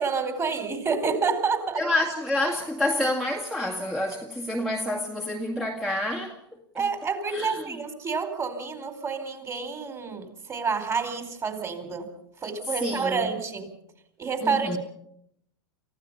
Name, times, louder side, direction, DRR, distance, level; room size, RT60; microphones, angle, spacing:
voice 1, 0.0-1.8 6.7-12.1 12.4-13.7 14.2-14.8, right 5 dB, 25° right, 4.6 m, -28 dB
voice 2, 1.8-6.4 6.8-6.9 7.3-7.7 12.8-13.3 14.4-14.8, left 1 dB, ahead, 2.0 m, -28 dB
29.5 x 16.0 x 5.7 m
hypercardioid pair, 100°, 13 cm